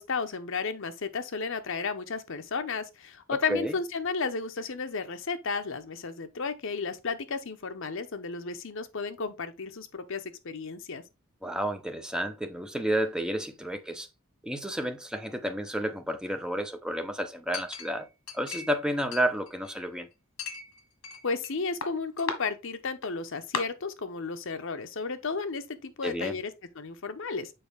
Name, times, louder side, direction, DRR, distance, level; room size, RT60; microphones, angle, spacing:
voice 1, 0.0-11.0 21.2-27.5, left 4 dB, 65° left, 0.9 m, -33 dB
voice 2, 11.4-14.1 14.4-18.1 18.3-20.1 26.0-26.4, right 1 dB, 5° right, 0.8 m, -31 dB
Chink clink, 17.5-18.8 19.1-19.9 20.4-21.5 21.8-22.4 23.0-23.1 23.5-23.6, left 5 dB, 85° left, 1.5 m, -36 dB
6.9 x 4.8 x 3.5 m
head